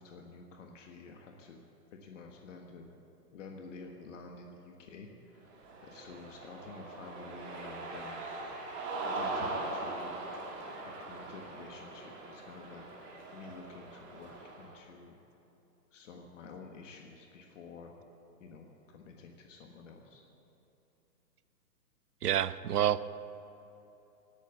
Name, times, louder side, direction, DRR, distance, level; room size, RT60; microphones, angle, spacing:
voice 1, 0.0-1.6 2.0-2.9 3.3-5.6 5.8-8.3 9.1-10.2 10.8-15.2 15.9-17.9 18.4-20.2, left 4 dB, 50° left, 2 dB, 1.6 m, -50 dB
Cheering, 5.5-14.7, right 2 dB, 25° right, 2.3 m, -41 dB
voice 2, 22.2-23.2, right 11 dB, 70° right, 16 dB, 0.8 m, -29 dB
18.0 x 9.0 x 8.3 m, 3.0 s
hypercardioid pair, 150°, 48 cm